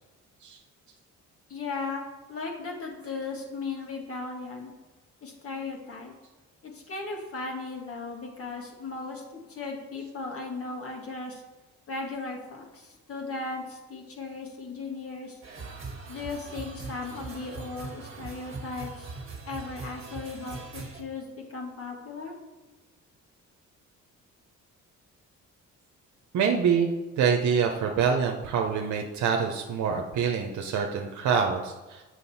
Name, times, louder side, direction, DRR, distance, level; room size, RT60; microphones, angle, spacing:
voice 1, 1.5-2.0 2.3-4.7 5.2-6.1 6.6-11.4 11.9-15.4 16.1-19.1 19.4-22.3, left 3 dB, 50° left, 1 dB, 1.7 m, -37 dB
sound 1, 15.4-21.0, right 3 dB, 45° right, 1.4 m, -41 dB
voice 2, 26.3-26.9 27.2-32.0, right 6 dB, 70° right, 2 dB, 0.8 m, -26 dB
7.5 x 6.3 x 4.2 m, 1.2 s
cardioid pair, 90°, 30 cm